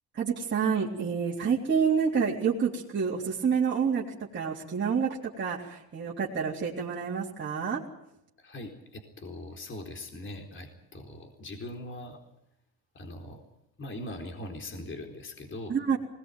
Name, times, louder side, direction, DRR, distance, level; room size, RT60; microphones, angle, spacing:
voice 1, 0.1-4.0 4.3-7.8 15.7-16.0, right 6 dB, 30° right, -5 dB, 3.7 m, -28 dB
voice 2, 8.4-12.2 12.9-13.4 13.8-15.8, left 1 dB, 30° left, 3 dB, 4.1 m, -41 dB
20.0 x 19.5 x 9.2 m, 0.80 s
cardioid pair, 100°, 39 cm